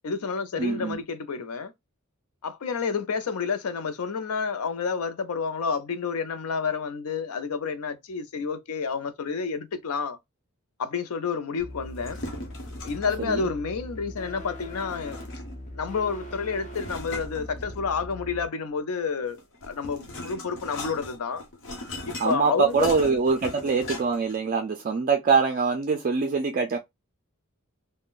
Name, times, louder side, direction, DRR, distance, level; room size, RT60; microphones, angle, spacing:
voice 1, 0.0-1.7 2.4-10.2 10.8-12.2 12.8-15.2 15.7-21.4 22.1-23.2, left 5 dB, 85° left, 0.5 m, -29 dB
voice 2, 0.6-1.0 13.2-13.5 22.2-26.8, right 5 dB, 40° right, 0.4 m, -24 dB
sound 1, 11.6-18.5, left 1 dB, 35° left, 0.7 m, -40 dB
sound 2, 11.9-13.3 14.7-15.7 16.7-18.1 19.3-24.4, left 2 dB, 60° left, 0.9 m, -39 dB
3.7 x 2.1 x 2.4 m
head